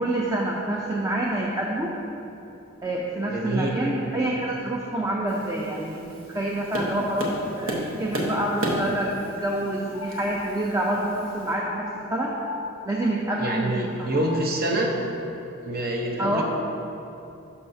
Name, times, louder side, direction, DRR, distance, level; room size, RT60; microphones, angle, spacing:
voice 1, 0.0-1.9 2.8-12.3 12.9-13.7 14.0-14.1 16.2-16.4, right 1 dB, 15° right, -2 dB, 0.5 m, -27 dB
voice 2, 3.3-3.8 13.4-14.9 15.6-16.4, right 1 dB, 50° right, 0 dB, 0.9 m, -26 dB
Tap, 5.3-11.5, right 1 dB, 70° right, 1.1 m, -33 dB
sound 1, 9.9-14.8, left 5 dB, 70° left, 0.4 m, -39 dB
11.5 x 5.6 x 2.7 m, 2.9 s
head